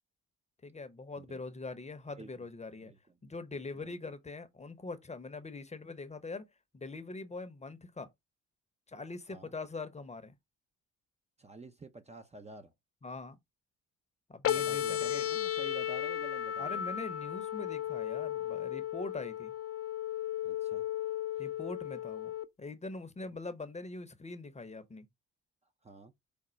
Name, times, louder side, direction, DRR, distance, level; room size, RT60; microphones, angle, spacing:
voice 1, 0.6-2.9 3.2-6.4 6.7-8.1 8.9-10.3 13.0-13.4 14.3-15.3 16.6-19.5 21.4-22.3 22.6-25.1, left 3 dB, 20° left, 0.8 m, -43 dB
voice 2, 3.7-4.1 9.3-9.5 11.4-12.7 14.5-16.8 20.4-20.9 25.8-26.1, right 3 dB, 20° right, 0.6 m, -50 dB
sound 1, 14.4-22.5, left 11 dB, 50° left, 0.5 m, -35 dB
5.1 x 2.1 x 4.3 m
cardioid pair, 90°, 30 cm